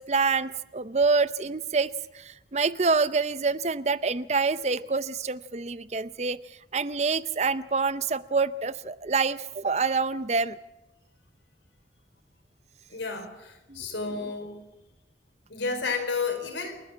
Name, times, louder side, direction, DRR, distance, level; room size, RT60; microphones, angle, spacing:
voice 1, 0.0-10.6 13.7-13.8, right 4 dB, 35° right, 16 dB, 0.6 m, -27 dB
voice 2, 12.9-14.6 15.5-16.8, left 4 dB, 90° left, 6 dB, 4.6 m, -31 dB
29.0 x 13.5 x 7.3 m, 1.0 s
head